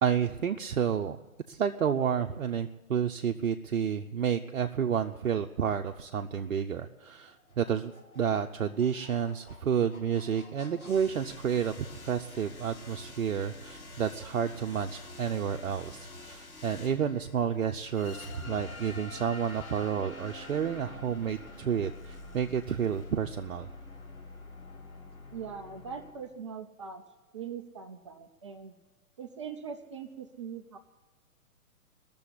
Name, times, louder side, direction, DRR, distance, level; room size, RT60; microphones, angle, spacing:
voice 1, 0.0-1.2 1.5-23.7, right 8 dB, 65° right, 5 dB, 0.8 m, -30 dB
sound 1, 7.3-26.1, left 2 dB, 75° left, 4.1 m, -47 dB
voice 2, 25.3-27.0 27.3-28.7 29.2-30.8, right 6 dB, 20° right, 6 dB, 0.5 m, -41 dB
21.0 x 7.0 x 9.8 m, 1.2 s
figure-of-eight pair, 120°, 43 cm